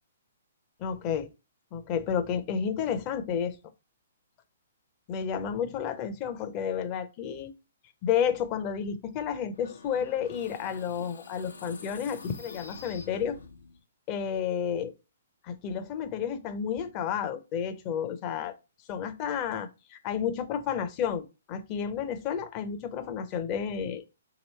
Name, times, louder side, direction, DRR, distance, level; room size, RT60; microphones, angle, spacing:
voice 1, 0.8-1.3 1.7-3.6 5.1-7.5 8.0-13.4 14.1-14.9 15.4-18.5 18.9-24.0, left 8 dB, 35° left, 0.7 m, -31 dB
sound 1, 9.5-13.8, left 4 dB, 85° left, 0.9 m, -46 dB
3.0 x 3.0 x 4.2 m
hypercardioid pair, 125°, 0 cm